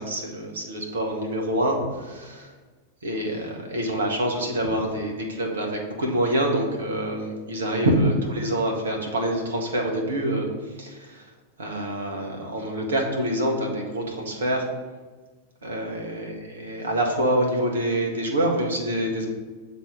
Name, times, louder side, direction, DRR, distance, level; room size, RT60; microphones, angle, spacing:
voice 1, 0.0-2.5 3.0-10.5 10.8-11.3 11.6-14.7 15.6-19.3, right 1 dB, 70° right, 1 dB, 1.3 m, -26 dB
7.2 x 4.1 x 5.3 m, 1.4 s
figure-of-eight pair, 90°, 0 cm